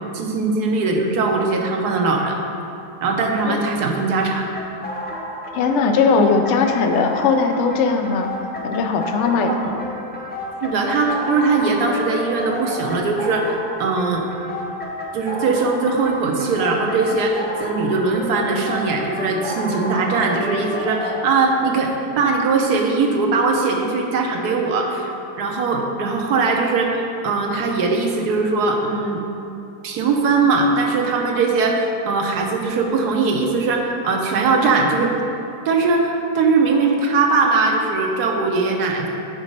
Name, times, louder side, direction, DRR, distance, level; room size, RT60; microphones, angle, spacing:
voice 1, 0.1-2.4 3.0-4.4 9.6-9.7 10.6-14.3 15.1-25.1 25.4-29.2 29.8-35.2 35.6-39.1, right 3 dB, 75° right, 1 dB, 1.3 m, -20 dB
sound 1, 4.5-21.3, left 1 dB, 15° left, 0.4 m, -31 dB
voice 2, 5.5-8.3 8.6-9.6, left 4 dB, 75° left, 5 dB, 0.6 m, -19 dB
7.3 x 4.0 x 5.3 m, 2.7 s
omnidirectional pair, 1.8 m